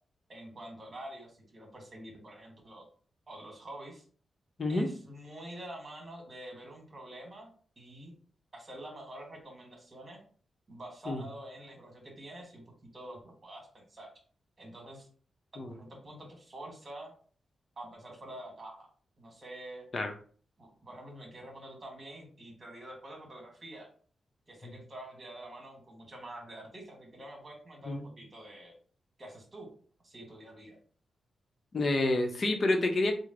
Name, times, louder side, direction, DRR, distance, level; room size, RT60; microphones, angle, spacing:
voice 1, 0.3-2.9 3.3-4.0 4.7-8.1 8.5-10.2 10.7-14.1 14.6-15.1 15.7-17.1 17.8-18.9 19.2-19.9 20.6-23.9 24.5-28.7 29.2-29.7 30.0-30.8, right 1 dB, 35° right, 1 dB, 1.4 m, -47 dB
voice 2, 31.7-33.1, left 2 dB, 45° left, 4 dB, 0.7 m, -29 dB
3.2 x 2.1 x 3.7 m, 0.43 s
cardioid pair, 90°, 0 cm